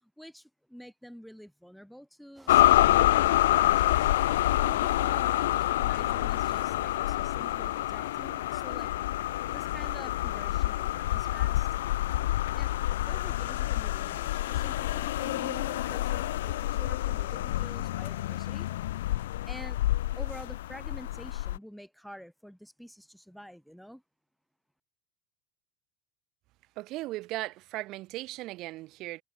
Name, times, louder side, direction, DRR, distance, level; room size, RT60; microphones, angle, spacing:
voice 1, 0.0-8.9 9.5-11.8 12.6-12.7 13.1-18.7 19.2-19.8 20.2-24.0, equal, ahead, 2.1 m, -48 dB
sound 1, 2.3-11.8, right 4 dB, 15° right, 2.8 m, -61 dB
sound 2, 2.5-21.6, left 15 dB, 90° left, 0.3 m, -27 dB
voice 2, 26.8-29.2, right 18 dB, 55° right, 0.8 m, -37 dB
supercardioid pair, 115°, 0 cm